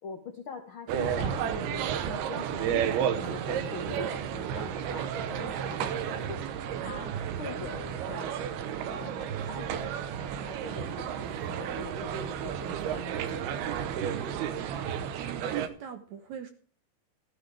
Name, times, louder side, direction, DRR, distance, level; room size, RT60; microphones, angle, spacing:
voice 1, 0.0-8.6 8.9-14.4, left 5 dB, 65° left, 4 dB, 1.3 m, -44 dB
sound 1, 0.9-15.7, right 8 dB, 90° right, 3.0 m, -32 dB
voice 2, 15.1-16.5, right 8 dB, 65° right, 8 dB, 1.9 m, -43 dB
14.5 x 13.5 x 3.4 m, 0.43 s
omnidirectional pair, 4.3 m